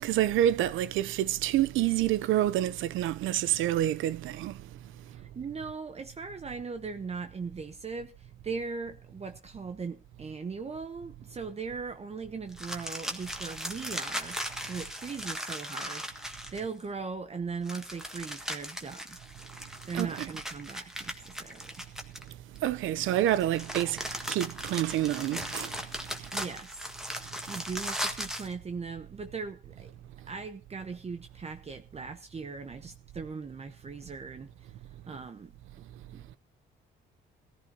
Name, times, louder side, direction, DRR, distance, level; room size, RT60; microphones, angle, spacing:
voice 1, 0.0-4.6 19.9-20.3 22.6-25.8, right 13 dB, 85° right, 0.6 m, -28 dB
voice 2, 5.1-14.4 14.6-19.2 19.9-21.8 26.3-29.9 30.3-34.7 35.1-35.5 36.1-36.2, right 5 dB, 30° right, 0.9 m, -39 dB
sound 1, 12.5-16.8 17.6-22.6 23.3-28.5, equal, 5° right, 1.6 m, -38 dB
18.5 x 14.5 x 2.8 m
cardioid pair, 90°, 20 cm